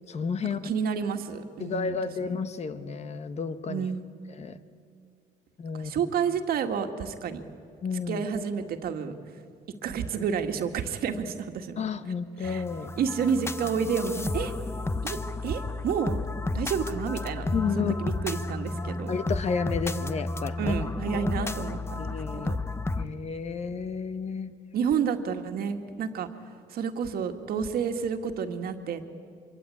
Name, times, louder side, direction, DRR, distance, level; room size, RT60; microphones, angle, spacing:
voice 1, 0.1-0.6 1.6-3.9 4.4-4.5 5.6-5.9 7.8-8.2 11.8-12.9 17.5-18.0 19.1-20.7 21.1-21.5 22.0-22.5 23.0-24.5, left 6 dB, 40° left, 11 dB, 1.2 m, -31 dB
voice 2, 0.6-2.3 3.7-4.2 5.8-7.4 8.1-9.1 9.8-11.8 12.4-12.6 13.0-14.5 15.0-15.2 15.4-16.2 16.5-17.5 17.8-19.1 20.6-22.6 24.7-26.3 26.7-29.1, right 6 dB, 60° right, 6 dB, 1.9 m, -30 dB
sound 1, 12.4-23.1, left 2 dB, 15° left, 0.9 m, -32 dB
25.0 x 23.0 x 8.5 m, 2.2 s
cardioid pair, 110°, 17 cm